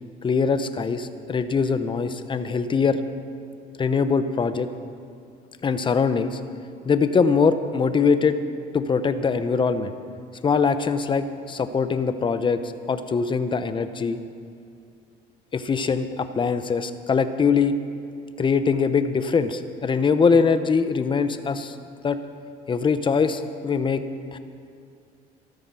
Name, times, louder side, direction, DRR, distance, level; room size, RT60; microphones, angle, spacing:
voice 1, 0.2-3.0 3.8-4.7 5.6-6.4 6.8-8.4 8.7-9.9 10.4-14.2 15.5-17.8 18.4-21.8 22.0-22.2 22.7-24.0 24.3-24.4, left 5 dB, 30° left, 10 dB, 0.8 m, -22 dB
13.5 x 13.5 x 6.2 m, 2.4 s
cardioid pair, 110°, 17 cm